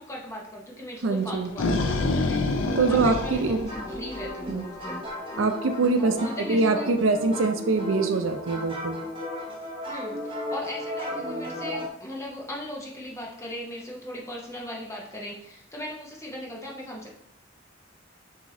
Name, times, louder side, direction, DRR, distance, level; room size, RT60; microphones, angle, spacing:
voice 1, 0.0-5.0 6.0-6.9 9.9-17.1, equal, 15° left, -2 dB, 0.9 m, -38 dB
voice 2, 1.0-1.5 2.8-3.7 4.5-4.6 5.4-9.1, right 3 dB, 85° right, 6 dB, 0.5 m, -24 dB
sound 1, 1.2-4.5, left 2 dB, 75° left, 0.5 m, -27 dB
sound 2, 3.7-11.9, left 1 dB, 25° right, 0.9 m, -35 dB
6.0 x 2.8 x 2.7 m, 0.76 s
head